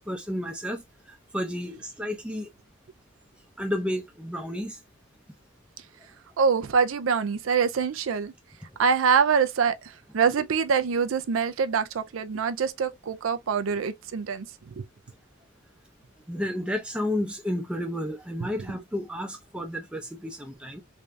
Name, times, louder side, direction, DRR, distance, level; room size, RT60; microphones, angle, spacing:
voice 1, 0.1-0.8 1.3-2.5 3.6-4.8 16.3-20.8, left 1 dB, 5° right, 0.6 m, -31 dB
voice 2, 6.4-8.3 8.8-9.8 10.1-14.5 14.8-14.9, right 6 dB, 80° right, 0.5 m, -24 dB
3.3 x 2.7 x 3.2 m
head